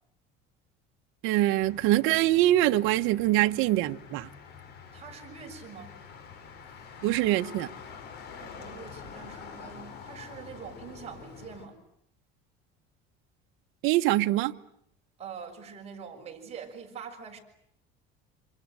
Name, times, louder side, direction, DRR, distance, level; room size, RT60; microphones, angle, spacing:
voice 1, 1.2-4.3 7.0-7.7 13.8-14.5, right 15 dB, 75° right, 1.3 m, -24 dB
Motor vehicle (road), 1.6-11.7, left 6 dB, 55° left, 5.6 m, -46 dB
voice 2, 4.9-6.0 8.4-11.8 15.2-17.4, right 6 dB, 30° right, 6.3 m, -44 dB
28.0 x 27.0 x 7.7 m
cardioid pair, 140°, 21 cm